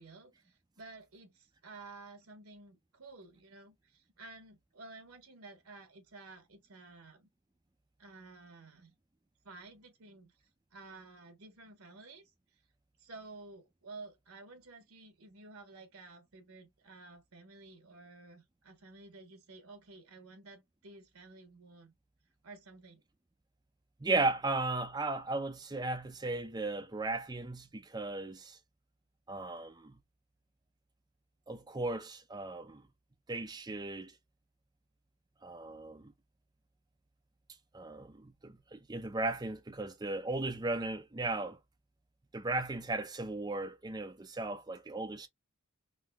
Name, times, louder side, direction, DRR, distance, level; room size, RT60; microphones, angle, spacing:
voice 1, 0.0-7.3 8.0-8.9 9.4-12.6 13.0-21.9 22.4-23.0, right 3 dB, 70° right, 1.2 m, -53 dB
voice 2, 24.0-28.6 29.3-30.0 31.5-32.9 33.3-34.1 35.4-36.1 37.7-41.6 42.3-45.3, right 2 dB, 20° right, 0.5 m, -36 dB
3.8 x 2.6 x 2.3 m
head